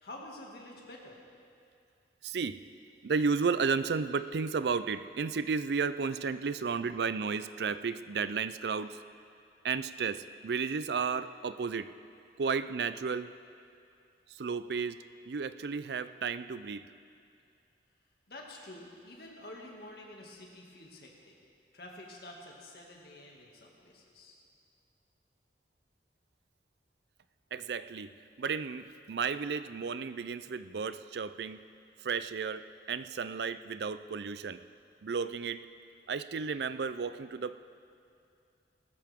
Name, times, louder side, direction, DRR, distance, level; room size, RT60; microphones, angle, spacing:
voice 1, 0.0-1.2 18.3-21.3 21.7-24.4, left 1 dB, 60° left, -1 dB, 2.2 m, -49 dB
voice 2, 2.2-2.6 3.0-9.0 9.6-11.9 12.4-13.3 14.3-15.0 15.3-16.8 27.5-28.1 28.4-31.6 32.0-34.6 35.0-35.6 36.1-37.6, right 5 dB, 75° right, 13 dB, 0.4 m, -33 dB
19.5 x 13.5 x 3.6 m, 2.4 s
head